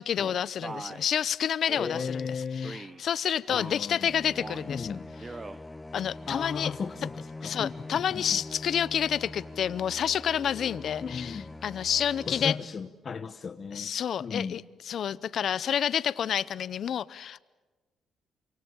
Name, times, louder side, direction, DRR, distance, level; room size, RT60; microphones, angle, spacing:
voice 1, 0.0-5.0 5.9-6.7 7.4-12.6 13.7-17.4, left 9 dB, 60° left, 17 dB, 0.8 m, -29 dB
Male speech man speaking, 0.6-1.1 1.7-2.1 2.6-3.0 3.4-3.9 4.3-4.7 5.1-5.6, right 3 dB, 25° right, 1.1 m, -41 dB
voice 2, 1.8-2.8 3.5-4.1 4.7-5.1 6.3-8.4 11.0-11.5 12.3-13.9 14.2-14.6, left 5 dB, 45° left, 8 dB, 1.1 m, -35 dB
sound 1, 3.9-12.5, left 2 dB, 15° left, 0.8 m, -43 dB
27.5 x 25.0 x 7.3 m, 1.2 s
cardioid pair, 90°, 0 cm